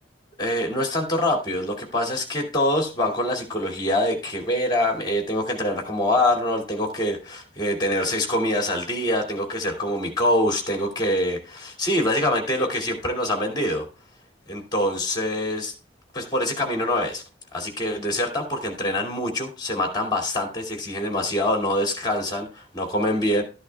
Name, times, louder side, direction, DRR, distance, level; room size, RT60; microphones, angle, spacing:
voice 1, 0.4-13.9 14.5-15.7 16.1-17.2 17.5-23.4, left 1 dB, 25° left, 3 dB, 2.5 m, -25 dB
12.5 x 11.0 x 2.3 m, 0.34 s
head